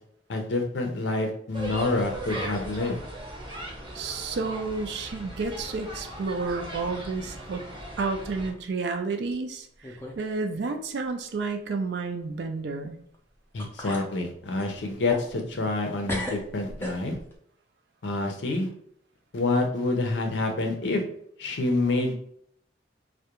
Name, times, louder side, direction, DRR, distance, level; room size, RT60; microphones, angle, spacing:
voice 1, 0.3-3.0 13.5-17.2 18.0-18.7 19.3-21.0 21.4-22.1, left 2 dB, 80° left, 4 dB, 0.5 m, -27 dB
sound 1, 1.5-8.5, right 1 dB, 25° right, 0.6 m, -39 dB
voice 2, 3.9-7.6 8.0-9.7 10.2-13.0, right 4 dB, 65° right, 6 dB, 0.4 m, -30 dB
sound 2, 5.4-6.3 6.6-7.1 7.5-7.6 8.5-8.6 9.3-9.4 9.8-10.2 10.5-10.6 13.1-13.2 13.6-14.1 14.6-17.4, left 1 dB, 10° left, 0.4 m, -38 dB
2.3 x 2.1 x 2.9 m, 0.67 s
head